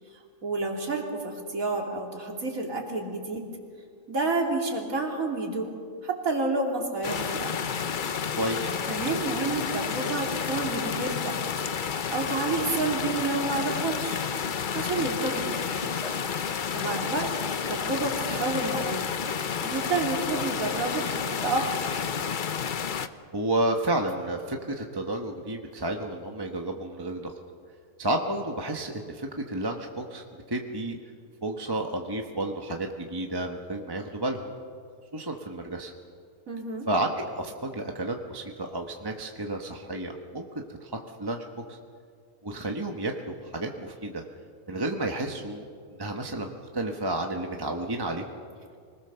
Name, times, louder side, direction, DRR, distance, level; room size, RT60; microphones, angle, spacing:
voice 1, 0.4-3.4 4.1-5.7 6.0-7.6 8.9-11.4 11.8-14.2 14.7-15.9 16.7-17.3 17.7-19.0 19.6-22.0 36.5-36.9, right 3 dB, 85° right, 0 dB, 3.4 m, -30 dB
sound 1, 7.0-23.1, left 6 dB, 45° left, 0.8 m, -30 dB
voice 2, 8.4-8.8 15.0-15.1 23.3-27.3 28.0-31.0 31.4-34.5 35.1-35.9 36.9-40.9 41.2-41.8 42.4-44.2 44.7-45.7 46.0-48.2, right 1 dB, 20° right, 2 dB, 1.2 m, -31 dB
sound 2, 16.0-16.1 16.8-17.0 17.8-17.9 18.8-18.9 20.3-20.5 21.4-21.5, equal, ahead, 2.5 m, -43 dB
25.5 x 20.0 x 6.9 m, 2.2 s
omnidirectional pair, 1.4 m